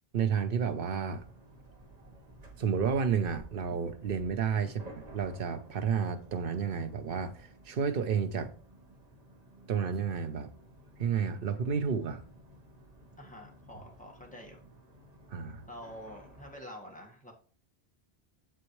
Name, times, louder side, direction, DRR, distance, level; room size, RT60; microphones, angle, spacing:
voice 1, 0.1-1.2 2.6-4.8 5.1-8.5 9.7-10.5 11.0-12.2 15.3-15.6, right 6 dB, 65° right, 1.0 m, -31 dB
sound 1, 1.2-16.5, right 1 dB, 40° right, 1.4 m, -54 dB
voice 2, 13.2-14.6 15.7-17.3, equal, 10° left, 1.6 m, -47 dB
8.0 x 7.4 x 3.1 m
omnidirectional pair, 1.0 m